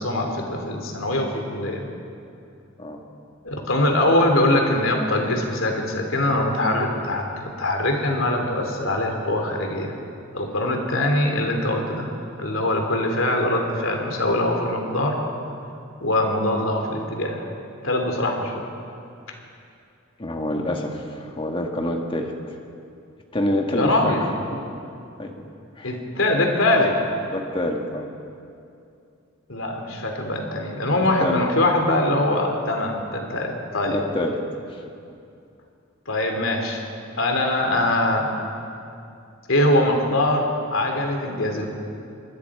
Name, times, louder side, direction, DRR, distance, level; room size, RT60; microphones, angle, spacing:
voice 1, 0.0-1.8 3.4-10.0 10.3-15.2 16.0-17.4 17.8-18.6 23.7-24.2 25.8-27.0 29.5-34.0 36.1-36.8 37.2-38.3 39.5-41.7, left 1 dB, 75° left, 3 dB, 3.0 m, -22 dB
voice 2, 20.2-22.3 23.3-24.1 24.5-24.6 25.2-25.3 25.8-25.9 27.3-28.1 31.2-31.5 33.9-34.4, left 1 dB, 25° left, 2 dB, 1.8 m, -26 dB
25.5 x 20.5 x 4.9 m, 2.6 s
head